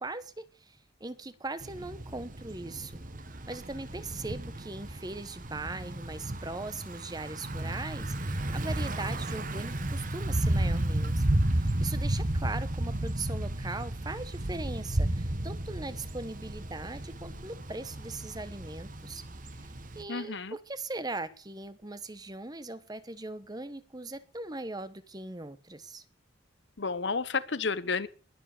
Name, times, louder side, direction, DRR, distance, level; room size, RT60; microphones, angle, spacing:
voice 1, 0.0-3.0 3.5-19.2 19.9-26.0, right 2 dB, 20° right, 13 dB, 1.1 m, -40 dB
Thunder / Bicycle, 1.6-20.0, right 1 dB, 45° right, 1.4 m, -33 dB
voice 2, 20.1-20.6 26.8-28.1, left 4 dB, 65° left, 15 dB, 1.0 m, -31 dB
21.0 x 7.5 x 6.9 m, 0.40 s
head